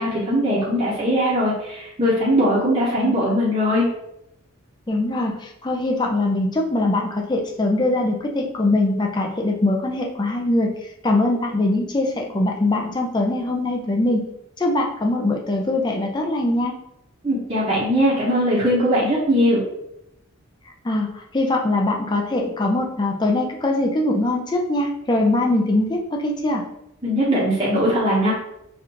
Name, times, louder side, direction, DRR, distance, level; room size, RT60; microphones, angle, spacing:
voice 1, 0.0-3.9 17.2-19.6 27.0-28.3, equal, 25° right, -8 dB, 0.8 m, -20 dB
voice 2, 4.9-10.7 11.0-14.3 14.6-16.8 20.8-26.6, left 2 dB, 20° left, 1 dB, 0.4 m, -22 dB
5.2 x 2.4 x 2.8 m, 0.82 s
head